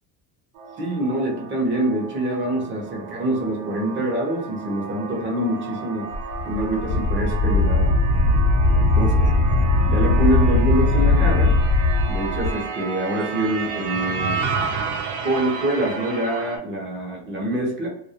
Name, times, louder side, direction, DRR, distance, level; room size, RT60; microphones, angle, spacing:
sound 1, 0.6-16.6, right 5 dB, 90° right, 0.7 m, -32 dB
voice 1, 0.8-6.1 6.4-7.9 8.9-9.3 9.8-11.5 12.1-14.4 15.2-17.9, right 1 dB, 25° right, -1 dB, 0.6 m, -25 dB
Wind, 6.1-12.5, left 2 dB, 55° left, 0.6 m, -19 dB
2.3 x 2.0 x 2.7 m, 0.73 s
cardioid pair, 145°, 48 cm